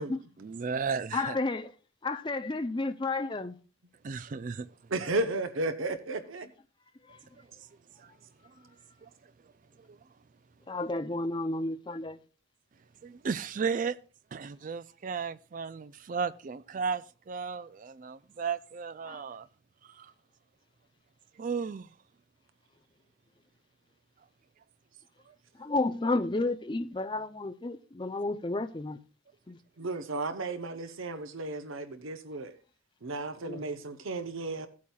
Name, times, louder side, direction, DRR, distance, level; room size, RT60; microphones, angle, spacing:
voice 1, 0.4-1.4 4.0-4.7 8.0-8.1 8.4-8.5 9.0-9.3 9.8-10.0 13.0-14.0 14.3-19.5 19.8-20.1 21.4-21.9 25.3-25.4, right 5 dB, 40° right, 0.4 m, -35 dB
voice 2, 1.1-1.7 2.0-3.6 7.1-7.2 10.7-12.2 19.0-19.2 25.6-29.0 29.5-29.6 33.4-33.6, left 2 dB, 25° left, 0.5 m, -32 dB
voice 3, 4.9-6.5 29.8-32.6 33.0-34.7, right 2 dB, 85° right, 0.9 m, -34 dB
16.5 x 8.5 x 2.3 m
head